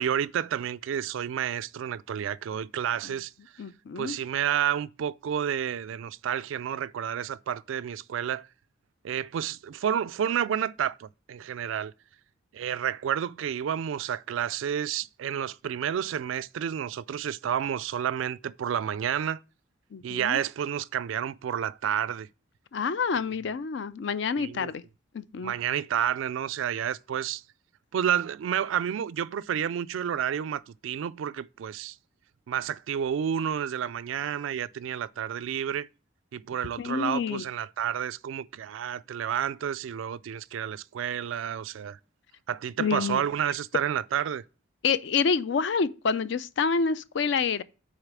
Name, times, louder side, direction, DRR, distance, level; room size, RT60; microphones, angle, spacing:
voice 1, 0.0-3.3 4.0-8.5 9.0-11.9 12.5-19.4 20.0-22.3 24.4-24.7 25.4-27.4 27.9-32.0 32.5-35.9 36.3-42.0 42.5-44.4, right 9 dB, 75° right, 0.3 m, -30 dB
voice 2, 3.6-4.2 19.9-20.4 22.7-24.8 25.1-25.5 36.8-37.4 42.8-43.2 44.8-47.6, left 5 dB, 60° left, 0.4 m, -28 dB
6.5 x 4.1 x 6.0 m
head